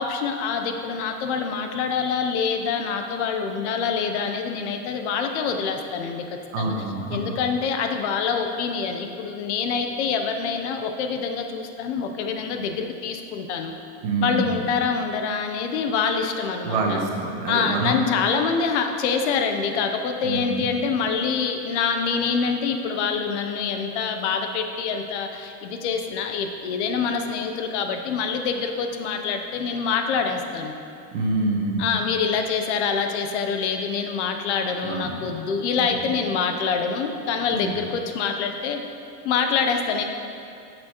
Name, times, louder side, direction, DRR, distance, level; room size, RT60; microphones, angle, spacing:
voice 1, 0.0-6.7 7.1-13.7 14.2-17.0 17.5-30.7 31.8-38.8 39.2-40.0, left 5 dB, 50° left, 5 dB, 0.6 m, -25 dB
voice 2, 6.5-7.4 14.0-14.5 16.6-18.0 20.2-20.7 31.1-31.9 34.8-35.3 35.8-36.0 37.5-37.8, right 3 dB, 50° right, 0 dB, 1.2 m, -26 dB
11.0 x 6.1 x 2.9 m, 2.5 s
supercardioid pair, 175°, 46 cm